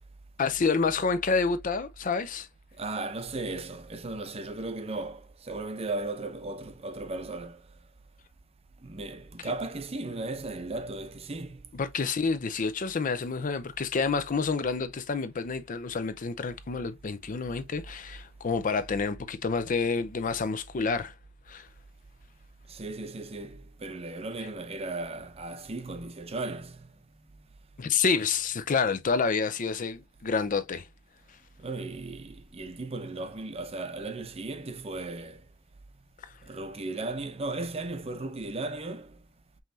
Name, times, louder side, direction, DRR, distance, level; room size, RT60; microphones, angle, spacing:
voice 1, 0.4-2.5 11.7-21.1 21.5-21.7 27.8-30.8, left 5 dB, 40° left, 0.5 m, -28 dB
voice 2, 2.8-7.6 8.8-11.7 22.7-26.9 31.6-35.5 36.4-39.2, right 2 dB, 30° right, 0.6 m, -36 dB
5.5 x 3.1 x 2.7 m
head